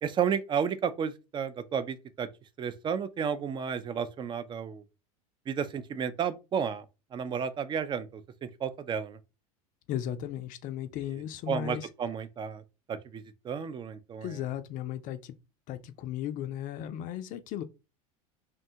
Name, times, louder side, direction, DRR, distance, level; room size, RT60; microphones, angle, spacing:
voice 1, 0.0-2.3 2.6-4.8 5.5-6.8 7.1-8.2 8.6-9.2 11.5-12.6 12.9-14.4, right 7 dB, 25° right, 0.4 m, -32 dB
voice 2, 9.9-11.9 14.2-15.3 15.7-17.6, left 11 dB, 45° left, 0.4 m, -36 dB
2.7 x 2.2 x 2.7 m
hypercardioid pair, 85°, 19 cm